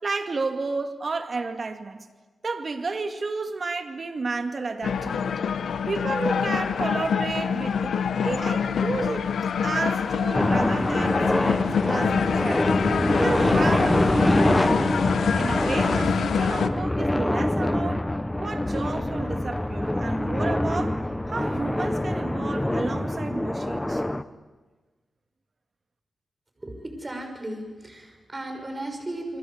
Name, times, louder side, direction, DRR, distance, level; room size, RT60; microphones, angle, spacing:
voice 1, 0.0-2.0 2.4-5.5 5.9-12.7 13.1-14.9 15.3-18.1 18.4-21.0 21.3-24.0, right 3 dB, 45° right, 6 dB, 2.5 m, -32 dB
sound 1, 4.8-16.7, left 7 dB, 85° left, 1.2 m, -26 dB
sound 2, 10.3-24.2, left 1 dB, 10° left, 1.0 m, -25 dB
voice 2, 26.6-29.4, right 1 dB, 25° right, 4 dB, 6.2 m, -35 dB
29.0 x 23.0 x 8.2 m, 1.3 s
wide cardioid pair, 100°, 0 cm